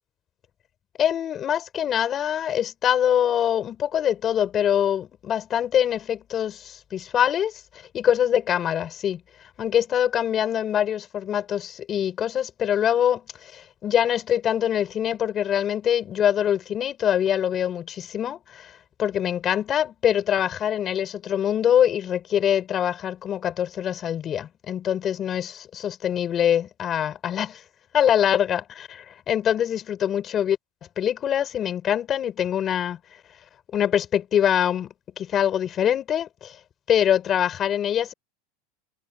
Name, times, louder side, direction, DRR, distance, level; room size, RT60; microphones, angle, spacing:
voice 1, 1.0-7.5 7.9-9.2 9.6-18.7 19.0-27.6 27.9-30.6 31.0-33.0 33.7-36.6 36.9-38.1, left 9 dB, 30° left, 4.4 m, -24 dB
supercardioid pair, 135°, 0 cm